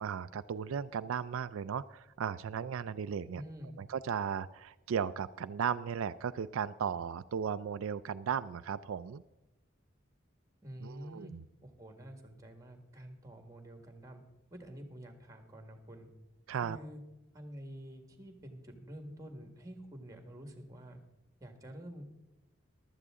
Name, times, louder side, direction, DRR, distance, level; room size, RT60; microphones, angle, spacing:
voice 1, 0.0-3.4 3.8-9.2 10.8-11.4 16.5-16.8, right 7 dB, 80° right, 13 dB, 0.4 m, -36 dB
voice 2, 3.3-3.8 10.6-11.3 11.6-14.2 14.5-16.1 16.5-17.0 17.3-21.0 21.4-22.1, equal, 15° right, 6 dB, 1.7 m, -48 dB
15.0 x 12.0 x 3.6 m, 1.0 s
head